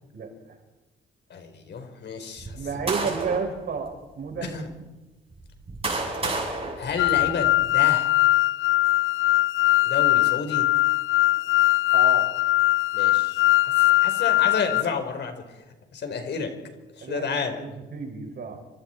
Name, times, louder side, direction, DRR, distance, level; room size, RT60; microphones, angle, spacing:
voice 1, 0.1-0.6 2.5-4.6 11.9-12.3 17.0-18.6, right 5 dB, 55° right, 2 dB, 6.3 m, -32 dB
voice 2, 1.3-2.6 4.4-4.7 6.2-6.5 6.8-8.1 9.8-10.7 12.9-15.3 15.9-16.5 16.9-17.5, left 5 dB, 60° left, 6 dB, 4.3 m, -31 dB
sound 1, 2.4-3.5 4.3-4.4 5.3-7.7, right 3 dB, 30° right, 8.0 m, -31 dB
sound 2, 7.0-14.8, left 17 dB, 85° left, 0.6 m, -21 dB
28.5 x 25.0 x 4.5 m, 1.1 s
cardioid pair, 90°, 20 cm